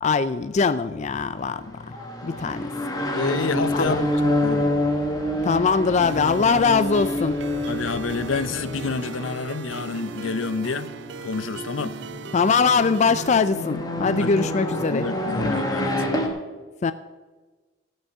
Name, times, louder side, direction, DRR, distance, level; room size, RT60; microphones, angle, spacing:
voice 1, 0.0-2.0 2.2-2.7 3.7-4.0 5.4-7.4 12.3-15.1 16.8-16.9, left 5 dB, 35° left, 13 dB, 0.3 m, -22 dB
sound 1, 1.0-16.3, left 1 dB, 20° left, 1.5 m, -28 dB
voice 2, 3.1-4.7 7.7-10.9 11.2-12.0 14.2-14.3 14.8-16.0, left 4 dB, 75° left, 13 dB, 0.7 m, -28 dB
sound 2, 3.5-9.0, right 2 dB, 85° right, 1.3 m, -43 dB
sound 3, 6.0-13.4, right 5 dB, 60° right, 0.5 m, -38 dB
16.5 x 6.3 x 7.2 m, 1.3 s
head